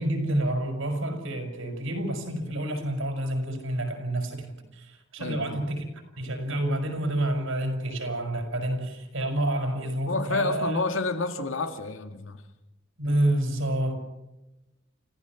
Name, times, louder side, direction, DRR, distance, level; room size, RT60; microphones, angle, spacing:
voice 1, 0.0-5.9 6.2-10.8 13.0-14.0, right 1 dB, 80° right, 5.2 m, -28 dB
voice 2, 5.2-5.6 10.1-12.4, left 3 dB, 75° left, 2.0 m, -29 dB
30.0 x 15.0 x 5.9 m
head